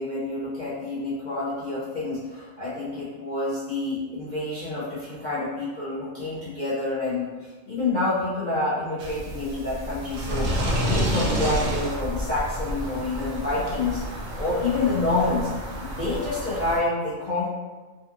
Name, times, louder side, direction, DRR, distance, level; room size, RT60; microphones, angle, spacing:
voice 1, 0.0-14.0 14.4-15.5 15.8-17.5, left 2 dB, 55° left, -10 dB, 0.5 m, -28 dB
sound 1, 9.0-16.8, equal, 60° right, 0.7 m, -29 dB
2.6 x 2.4 x 2.4 m, 1.3 s
omnidirectional pair, 1.4 m